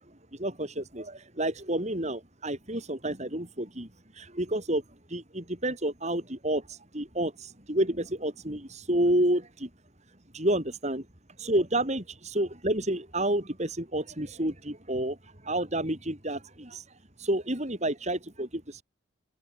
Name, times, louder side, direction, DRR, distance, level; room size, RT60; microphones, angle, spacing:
voice 1, 0.3-3.9 4.2-4.8 5.1-9.7 10.3-11.1 11.4-15.2 15.4-16.8 17.2-18.5, right 1 dB, 35° right, 4.2 m, -29 dB
open air
head